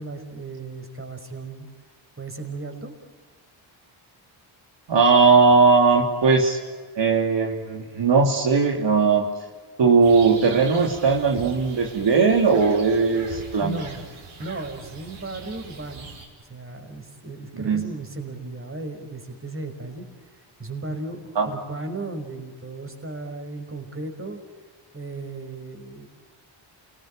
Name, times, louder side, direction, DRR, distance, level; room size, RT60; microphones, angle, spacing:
voice 1, 0.0-1.7 2.2-2.9 13.6-14.0 14.4-16.1 16.5-20.1 20.6-21.2 21.5-24.4 24.9-26.1, right 2 dB, 25° right, 6 dB, 5.4 m, -35 dB
voice 2, 4.9-6.6 7.0-9.3 9.8-13.8 17.5-17.9 21.3-21.5, right 4 dB, 60° right, 1 dB, 3.2 m, -19 dB
sound 1, 10.0-16.3, right 4 dB, 80° right, 6.4 m, -42 dB
29.0 x 20.5 x 9.1 m, 1.5 s
cardioid pair, 75°, 49 cm